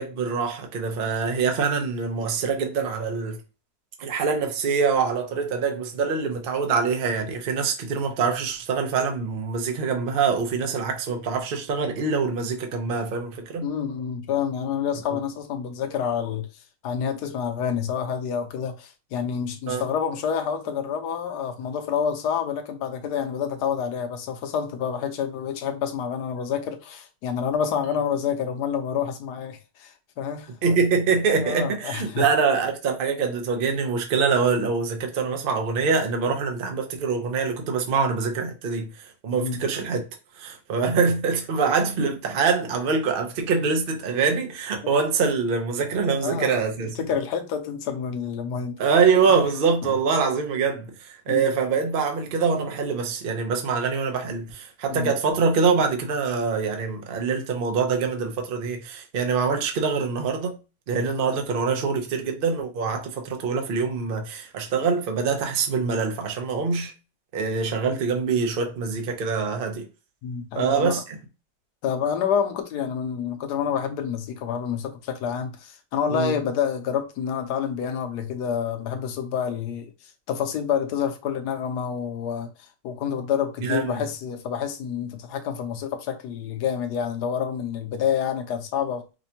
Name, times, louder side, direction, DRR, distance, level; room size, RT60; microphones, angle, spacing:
voice 1, 0.0-3.4 4.0-13.7 19.7-19.8 30.6-40.1 40.4-47.1 48.8-60.6 60.9-66.9 67.3-69.9 70.6-71.2 76.1-76.3 83.6-84.0, right 5 dB, 85° right, 0.4 m, -24 dB
voice 2, 13.6-16.5 16.8-30.5 31.4-32.2 39.4-39.6 44.8-44.9 46.2-46.6 47.0-48.8 49.2-49.3 49.8-49.9 51.3-51.5 54.9-55.1 70.2-71.0 71.8-79.9 80.3-82.5 82.8-89.2, left 7 dB, 70° left, 1.2 m, -28 dB
5.1 x 2.2 x 2.7 m
omnidirectional pair, 1.9 m